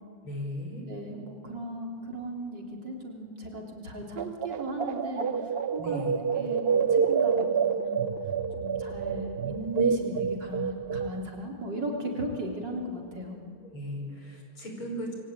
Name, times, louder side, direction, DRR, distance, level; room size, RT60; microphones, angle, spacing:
voice 1, 0.2-0.9 5.8-6.2 13.6-15.1, equal, 80° left, 2 dB, 6.2 m, -37 dB
voice 2, 0.9-6.0 6.3-8.1 8.6-13.4, right 1 dB, 55° right, 0 dB, 3.9 m, -36 dB
sound 1, 4.2-11.1, right 6 dB, 80° right, 0.5 m, -28 dB
27.0 x 22.0 x 8.9 m, 2.5 s
omnidirectional pair, 2.3 m